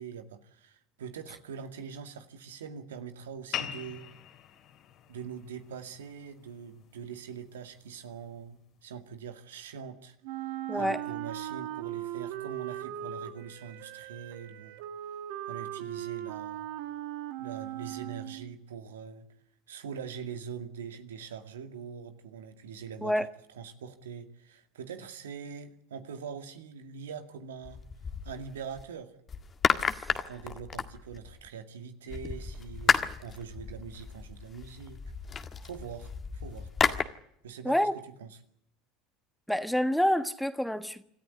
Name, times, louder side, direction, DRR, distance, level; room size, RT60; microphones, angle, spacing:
voice 1, 0.0-4.1 5.1-10.5 10.7-14.8 15.5-16.7 17.4-19.2 19.7-23.2 23.5-27.8 28.2-29.1 30.1-35.0 35.6-36.7 37.4-37.8 38.2-38.4, right 7 dB, 85° right, 2.1 m, -43 dB
sound 1, 3.5-8.6, left 10 dB, 50° left, 2.9 m, -43 dB
Wind instrument woodwind instrument, 10.2-18.5, right 12 dB, 70° right, 1.9 m, -39 dB
voice 2, 10.7-11.0 23.0-23.3 29.8-30.1 37.6-37.9 39.5-41.0, equal, ahead, 1.5 m, -27 dB
sound 2, 27.6-28.8 29.3-31.5 32.1-37.0, left 6 dB, 30° left, 1.8 m, -32 dB
26.5 x 13.5 x 10.0 m
hypercardioid pair, 80°, 0 cm